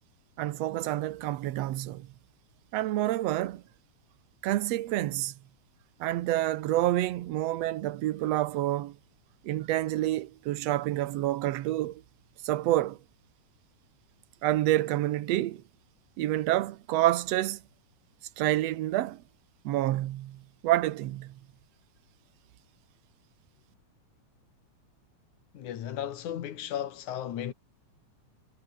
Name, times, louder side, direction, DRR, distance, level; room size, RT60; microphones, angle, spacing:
voice 1, 0.4-2.1 2.7-3.6 4.4-5.3 6.0-9.0 9.4-12.0 12.4-13.0 14.4-15.6 16.2-17.6 18.4-19.2 19.7-21.4, right 15 dB, 70° right, 1.8 m, -28 dB
voice 2, 25.5-27.5, left 10 dB, 80° left, 3.1 m, -35 dB
omnidirectional pair, 3.4 m